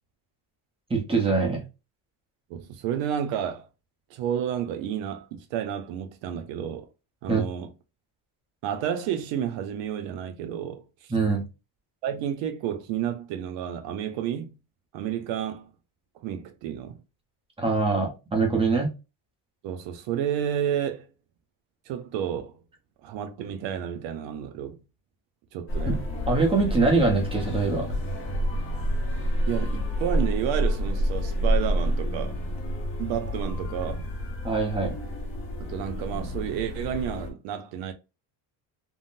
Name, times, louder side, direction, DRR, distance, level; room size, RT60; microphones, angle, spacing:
voice 1, 0.9-1.6 7.3-7.4 11.1-11.4 17.6-18.9 25.9-26.0 26.3-27.9 34.4-35.0, right 4 dB, 10° right, 0.8 m, -23 dB
voice 2, 2.5-3.7 4.1-6.9 7.2-7.7 8.6-11.1 12.0-14.6 14.9-15.7 16.1-17.0 19.6-21.1 21.9-22.6 23.0-24.8 25.5-26.1 29.5-32.4 33.0-34.1 35.6-37.9, right 9 dB, 70° right, 0.7 m, -31 dB
sound 1, 25.7-37.3, equal, 30° left, 0.7 m, -29 dB
3.6 x 2.1 x 2.4 m
cardioid pair, 160°, 46 cm